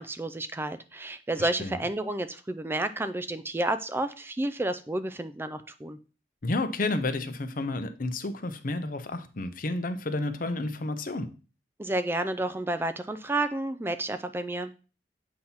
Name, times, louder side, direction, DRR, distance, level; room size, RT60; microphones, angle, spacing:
voice 1, 0.0-6.0 11.8-14.7, right 2 dB, 15° right, 10 dB, 0.4 m, -31 dB
voice 2, 1.4-1.8 6.4-11.3, left 2 dB, 50° left, 9 dB, 0.8 m, -31 dB
8.5 x 2.9 x 5.7 m, 0.35 s
head